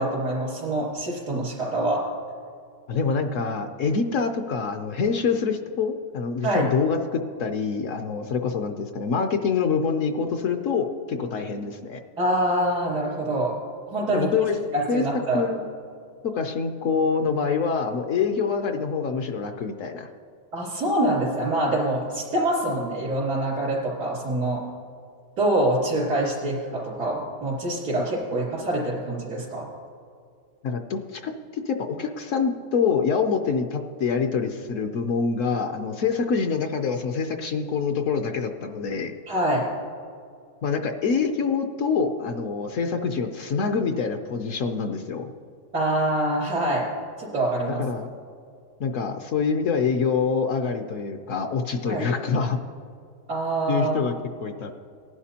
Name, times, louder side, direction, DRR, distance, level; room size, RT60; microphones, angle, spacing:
voice 1, 0.0-2.0 6.4-6.6 12.2-13.5 13.9-14.3 14.7-15.5 20.5-24.6 25.4-29.7 39.3-39.7 45.7-46.9 47.2-47.8 51.9-52.1 53.3-54.0, right 1 dB, 90° right, -11 dB, 3.5 m, -25 dB
voice 2, 2.9-12.0 14.1-14.6 14.9-15.0 15.3-15.7 16.2-20.1 27.9-28.0 28.3-28.4 30.6-39.1 40.6-45.3 47.8-48.1 48.8-52.6 53.7-54.1 54.4-54.7, left 5 dB, 65° left, 6 dB, 0.9 m, -26 dB
18.5 x 11.0 x 2.8 m, 2.3 s
omnidirectional pair, 1.6 m